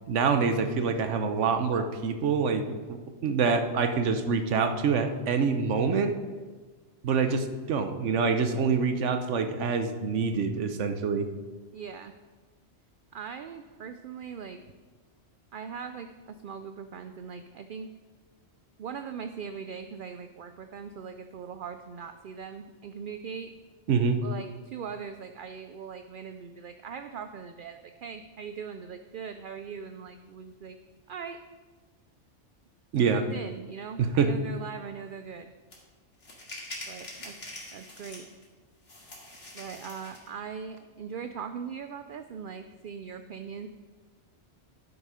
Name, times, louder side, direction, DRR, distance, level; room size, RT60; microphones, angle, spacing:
voice 1, 0.1-6.1 7.0-11.3 23.9-24.2 32.9-33.2 34.0-34.3, right 5 dB, 90° right, 8 dB, 1.2 m, -26 dB
voice 2, 11.7-12.1 13.1-14.6 15.5-17.9 18.8-23.5 24.2-30.8 31.1-31.4 33.1-35.5 36.9-37.4 37.7-38.3 39.5-43.7, right 6 dB, 60° right, 8 dB, 0.6 m, -40 dB
sound 1, 35.7-35.8 36.2-38.4 38.9-40.3, left 1 dB, 85° left, 2.6 m, -43 dB
12.0 x 7.0 x 5.0 m, 1.4 s
omnidirectional pair, 1.2 m